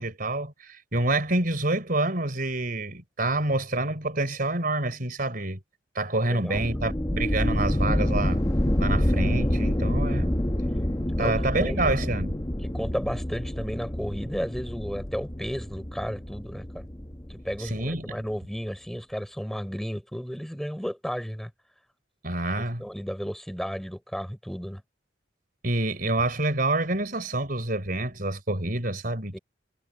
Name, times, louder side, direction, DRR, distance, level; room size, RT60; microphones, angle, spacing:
voice 1, 0.0-5.6 5.9-8.4 8.8-10.3 11.2-12.4 17.6-18.2 22.2-22.8 25.6-29.4, right 2 dB, 50° right, 4.2 m, -27 dB
voice 2, 6.3-6.8 11.2-12.0 12.6-16.9 17.3-21.5 22.6-24.8 29.3-29.4, equal, ahead, 6.2 m, -33 dB
sound 1, 6.5-18.0, left 1 dB, 20° left, 1.1 m, -27 dB
head